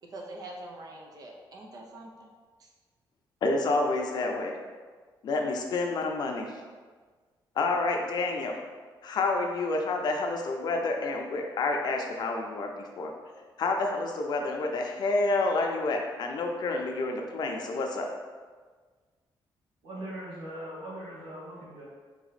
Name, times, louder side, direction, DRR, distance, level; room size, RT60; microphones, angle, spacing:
voice 1, 0.0-2.3 2.6-2.7, right 1 dB, 45° right, 0 dB, 0.7 m, -44 dB
voice 2, 3.4-4.5 5.2-6.6 7.6-8.6 9.0-13.1 13.6-18.1, left 3 dB, 55° left, 2 dB, 0.6 m, -29 dB
voice 3, 19.8-21.8, right 1 dB, 70° right, -7 dB, 1.4 m, -40 dB
4.1 x 2.9 x 4.0 m, 1.5 s
cardioid pair, 155°, 9 cm